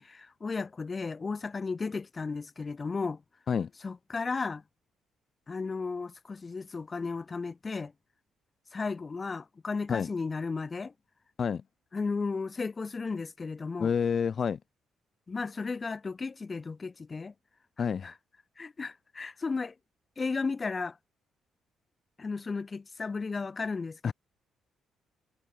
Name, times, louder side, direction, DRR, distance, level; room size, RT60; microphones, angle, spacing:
voice 1, 0.0-3.2 3.8-4.6 5.5-7.9 8.7-10.9 11.9-13.9 15.3-17.3 18.0-18.1 18.6-19.7 20.2-21.0 22.2-24.1, left 4 dB, 30° left, 1.6 m, -34 dB
voice 2, 13.8-14.6 17.8-18.1 24.0-24.1, left 6 dB, 50° left, 0.5 m, -28 dB
cardioid pair, 90°, 0 cm